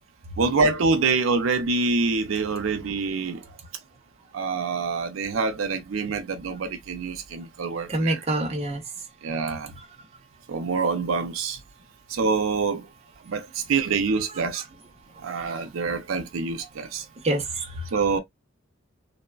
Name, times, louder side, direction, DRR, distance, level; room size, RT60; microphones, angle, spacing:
voice 1, 0.4-3.4 4.3-8.2 9.2-9.7 10.5-11.6 12.1-12.9 13.3-14.6 15.2-17.0 17.9-18.2, right 4 dB, 85° right, 0.5 m, -26 dB
voice 2, 7.9-8.8 9.8-10.1 14.5-14.6 15.2-15.4 17.2-17.9, right 1 dB, 30° right, 0.7 m, -27 dB
3.1 x 2.0 x 2.2 m
head